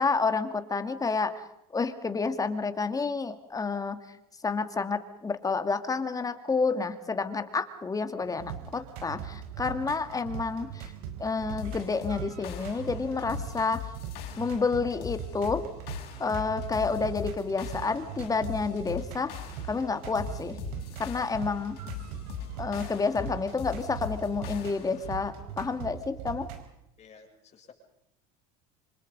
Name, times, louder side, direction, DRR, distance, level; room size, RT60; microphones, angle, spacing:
voice 1, 0.0-1.3 1.7-4.0 4.4-10.9 11.2-13.8 14.4-15.6 16.2-19.3 19.7-20.6 21.0-21.8 22.6-26.5, left 4 dB, 20° left, 9 dB, 2.4 m, -29 dB
sound 1, 8.2-26.7, right 8 dB, 75° right, 4.7 m, -41 dB
sound 2, 11.6-25.1, left 11 dB, 55° left, 5.6 m, -41 dB
voice 2, 27.0-27.7, left 5 dB, 35° left, 2 dB, 7.6 m, -53 dB
26.0 x 26.0 x 5.4 m, 0.84 s
supercardioid pair, 110°, 19 cm